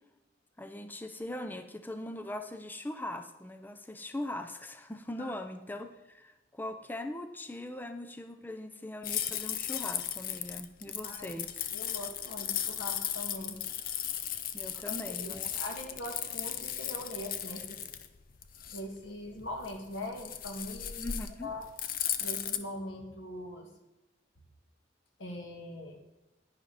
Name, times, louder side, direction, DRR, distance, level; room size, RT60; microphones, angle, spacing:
voice 1, 0.6-11.7 14.5-15.5 21.0-21.5, left 1 dB, 10° left, 8 dB, 0.5 m, -41 dB
sound 1, 9.0-22.6, left 10 dB, 50° left, 0.6 m, -36 dB
voice 2, 11.0-11.4 11.7-13.6 14.7-17.8 18.7-21.1 21.4-21.6 22.2-23.7 25.2-26.0, left 1 dB, 85° left, 2 dB, 2.1 m, -42 dB
11.0 x 9.8 x 4.2 m, 1.0 s
head